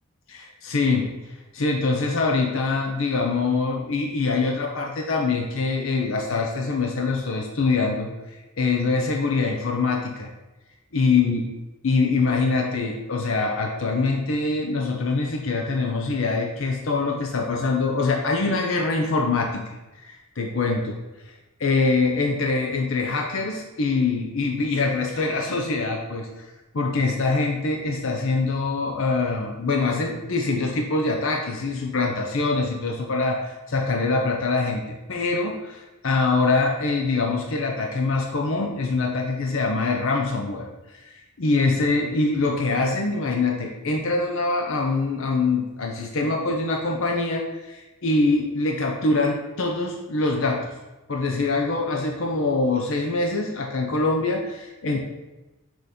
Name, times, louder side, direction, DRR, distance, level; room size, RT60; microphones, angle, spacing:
voice 1, 0.3-1.1 1.5-8.1 8.6-10.3 10.9-11.4 11.8-19.8 20.0-21.0 21.2-21.3 21.6-26.4 26.7-50.7 51.1-55.0, left 3 dB, 60° left, 1 dB, 0.6 m, -24 dB
6.3 x 3.0 x 5.1 m, 1.1 s
head